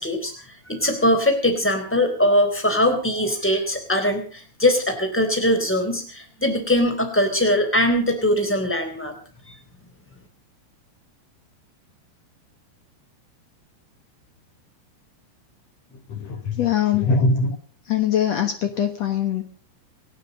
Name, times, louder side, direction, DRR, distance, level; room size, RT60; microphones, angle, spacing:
voice 1, 0.0-9.1, left 1 dB, 5° left, 5 dB, 2.8 m, -21 dB
voice 2, 15.9-17.6 17.8-19.4, left 6 dB, 85° left, 7 dB, 1.5 m, -22 dB
27.0 x 9.3 x 5.3 m, 0.41 s
omnidirectional pair, 5.2 m